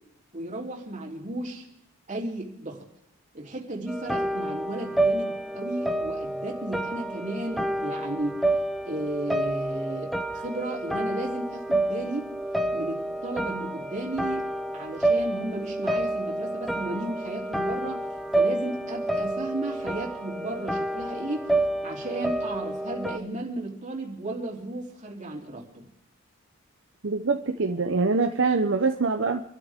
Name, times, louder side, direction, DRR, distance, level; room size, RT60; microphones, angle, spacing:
voice 1, 0.3-1.6 2.1-2.8 3.3-8.6 8.8-12.3 12.7-14.5 14.7-18.0 18.3-21.5 21.8-25.9, right 1 dB, 35° right, -1 dB, 3.4 m, -34 dB
sound 1, 3.9-23.2, right 1 dB, ahead, 0.7 m, -29 dB
voice 2, 27.0-29.4, right 4 dB, 60° right, 6 dB, 0.8 m, -24 dB
27.5 x 12.5 x 3.7 m, 0.76 s
head